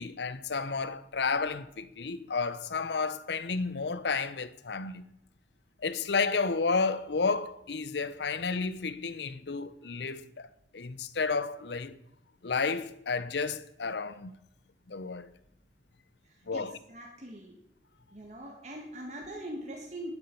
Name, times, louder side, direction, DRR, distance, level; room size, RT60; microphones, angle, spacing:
voice 1, 0.0-5.1 5.8-10.5 10.7-12.0 12.4-14.3 14.9-15.3 16.5-16.8, left 4 dB, 70° left, 0.7 m, -31 dB
voice 2, 16.5-17.6 18.1-20.1, right 1 dB, 40° right, 1.7 m, -42 dB
12.0 x 10.5 x 5.4 m
head